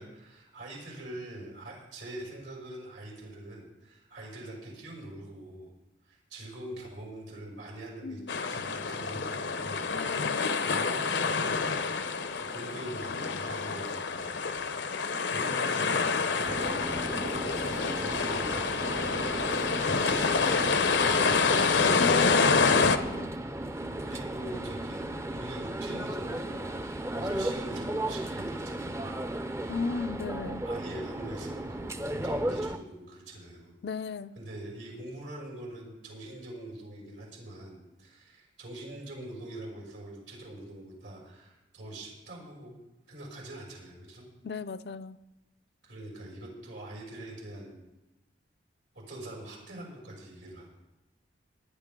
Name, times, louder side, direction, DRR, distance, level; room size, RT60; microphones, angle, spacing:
voice 1, 0.0-5.7 6.0-8.2 8.5-11.6 12.3-14.4 15.2-17.5 17.7-19.5 20.0-21.4 24.0-29.1 30.6-33.7 34.3-42.7 43.1-44.2 45.8-47.8 48.9-50.7, right 1 dB, 85° right, 5.9 m, -44 dB
voice 2, 8.0-8.3 9.9-10.5 22.0-23.3 29.7-30.6 33.8-34.3 44.4-45.2, left 4 dB, 60° left, 0.4 m, -35 dB
sound 1, 8.3-23.0, left 4 dB, 75° left, 0.8 m, -27 dB
sound 2, 16.4-32.8, right 1 dB, 15° right, 0.5 m, -35 dB
20.0 x 10.5 x 3.7 m
head